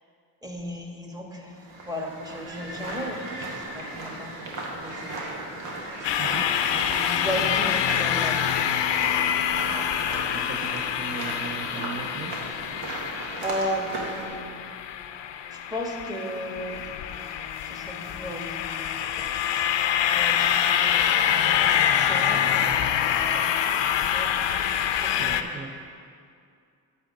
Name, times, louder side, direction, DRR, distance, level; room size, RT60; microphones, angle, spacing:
voice 1, 0.4-1.6 1.9-5.5 6.8-8.5 9.6-9.9 13.4-14.7 15.5-16.8 17.6-18.6 19.0-19.3 20.0-21.1 21.3-22.5 23.3-23.5 24.1-24.3 24.8-25.5, equal, 10° right, 1 dB, 1.4 m, -35 dB
sound 1, 1.5-14.3, right 2 dB, 85° right, 1.4 m, -36 dB
sound 2, 6.0-25.4, left 9 dB, 75° left, 0.6 m, -26 dB
voice 2, 6.2-6.5 10.3-12.4 22.6-22.8 25.2-25.7, right 5 dB, 25° right, 3 dB, 0.6 m, -38 dB
8.9 x 4.2 x 7.0 m, 2.4 s
cardioid pair, 65°, 44 cm